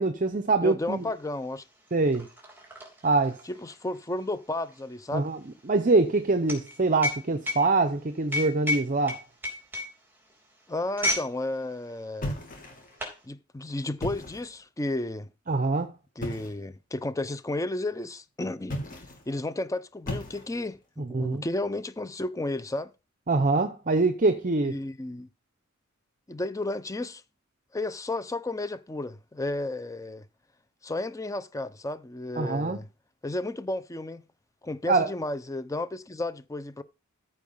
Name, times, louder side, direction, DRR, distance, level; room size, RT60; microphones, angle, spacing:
voice 1, 0.0-1.0 1.9-2.3 3.0-3.4 5.1-5.4 5.7-9.2 15.5-15.9 21.0-21.4 23.3-24.8 32.4-32.8 34.9-35.1, right 3 dB, 40° right, 0.7 m, -24 dB
voice 2, 0.6-1.6 3.4-5.3 10.7-12.4 13.2-15.3 16.2-18.8 19.3-22.9 24.7-25.3 26.3-27.2 27.7-30.3 30.8-32.9 33.2-34.2 34.6-36.8, left 2 dB, 15° left, 0.5 m, -33 dB
sound 1, 1.0-1.1 1.4-11.3 11.6-11.9 12.6-13.2, left 1 dB, 10° right, 3.1 m, -33 dB
sound 2, 12.2-13.0 13.9-14.6 16.2-16.6 18.6-19.3 20.0-20.8, left 1 dB, 40° left, 2.6 m, -36 dB
13.5 x 4.7 x 5.4 m
head